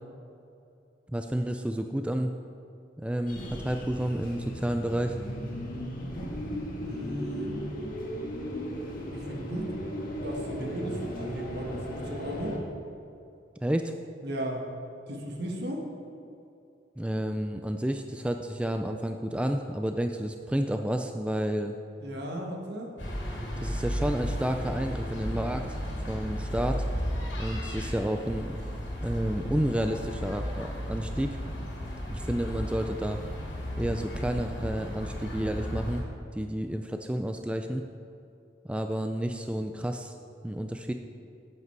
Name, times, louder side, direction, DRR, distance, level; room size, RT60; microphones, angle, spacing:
voice 1, 1.1-2.3 3.0-5.2 13.6-13.9 17.0-21.7 23.6-25.8 26.1-26.8 27.4-28.6 29.0-31.4 32.1-33.2 33.7-36.1 36.3-37.8 38.6-40.1 40.4-40.9, right 1 dB, 5° right, 5 dB, 0.3 m, -30 dB
sound 1, 3.3-12.6, equal, 50° left, 1.6 m, -36 dB
voice 2, 6.8-7.5 9.1-9.8 10.2-12.6 14.2-14.7 15.1-15.9 22.0-22.9, equal, 60° right, 1 dB, 1.6 m, -35 dB
sound 2, 23.0-36.0, equal, 75° left, 2.3 m, -34 dB
11.0 x 8.2 x 4.6 m, 2.6 s
head